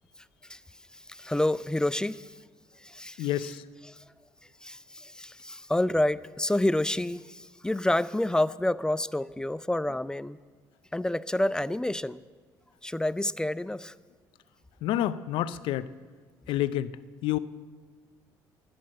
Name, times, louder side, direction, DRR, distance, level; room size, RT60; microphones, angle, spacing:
voice 1, 0.9-2.3 2.8-3.3 3.9-4.0 4.6-10.4 10.9-12.2 12.8-13.9, left 1 dB, 10° left, 17 dB, 0.4 m, -28 dB
voice 2, 3.2-3.6 14.8-15.9 16.5-16.9 17.2-17.4, left 13 dB, 75° left, 15 dB, 0.6 m, -28 dB
12.0 x 10.5 x 7.6 m, 1.5 s
supercardioid pair, 80°, 9 cm